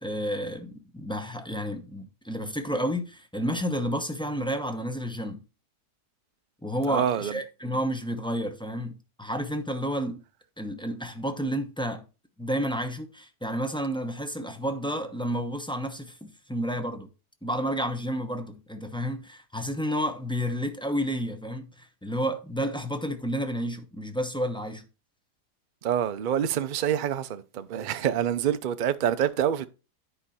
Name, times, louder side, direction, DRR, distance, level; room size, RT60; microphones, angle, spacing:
voice 1, 0.0-5.4 6.6-10.2 10.6-12.0 12.4-17.1 17.4-24.8, equal, 5° left, 0.6 m, -31 dB
voice 2, 6.9-7.4 25.8-29.7, right 9 dB, 60° right, 0.5 m, -26 dB
10.0 x 5.3 x 4.2 m
omnidirectional pair, 1.7 m